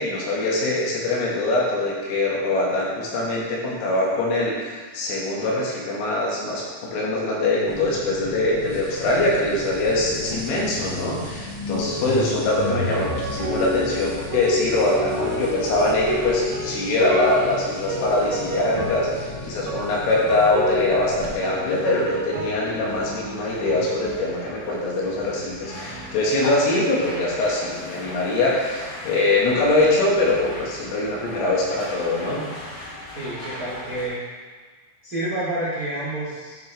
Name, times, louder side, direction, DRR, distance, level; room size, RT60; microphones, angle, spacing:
voice 1, 0.0-32.4, left 2 dB, 85° left, -4 dB, 4.3 m, -23 dB
sound 1, 7.7-21.3, left 2 dB, 15° left, 0.8 m, -35 dB
sound 2, 11.7-23.0, equal, 55° right, 2.3 m, -30 dB
sound 3, 21.1-34.1, left 1 dB, 50° left, 4.2 m, -38 dB
voice 2, 33.1-34.2 35.0-36.7, right 1 dB, 75° right, -9 dB, 0.8 m, -29 dB
11.5 x 6.0 x 3.4 m, 1.5 s
omnidirectional pair, 5.7 m